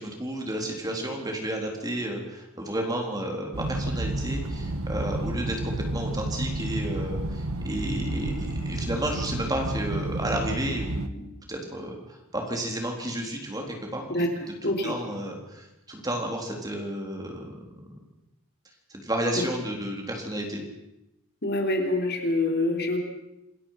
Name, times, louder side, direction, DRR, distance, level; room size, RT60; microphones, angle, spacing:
voice 1, 0.0-14.3 14.6-17.6 17.9-18.0 18.9-20.6, right 1 dB, 15° right, 1 dB, 3.9 m, -32 dB
sound 1, 3.5-11.1, right 1 dB, 80° right, 1.5 m, -31 dB
voice 2, 14.6-14.9 21.4-23.0, left 2 dB, 50° left, 2 dB, 3.7 m, -25 dB
27.5 x 21.5 x 5.9 m, 0.89 s
head